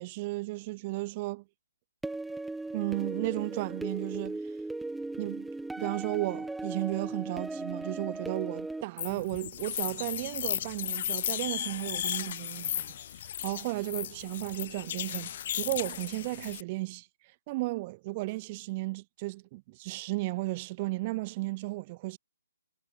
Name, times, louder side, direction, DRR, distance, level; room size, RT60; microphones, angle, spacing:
voice 1, 0.0-1.4 2.7-4.4 5.2-5.5 5.8-17.1 17.5-22.2, right 22 dB, 30° right, 2.3 m, -34 dB
sound 1, 2.0-8.8, right 2 dB, 5° right, 1.8 m, -37 dB
sound 2, 9.0-16.6, left 11 dB, 45° left, 1.0 m, -35 dB
hypercardioid pair, 150°, 0 cm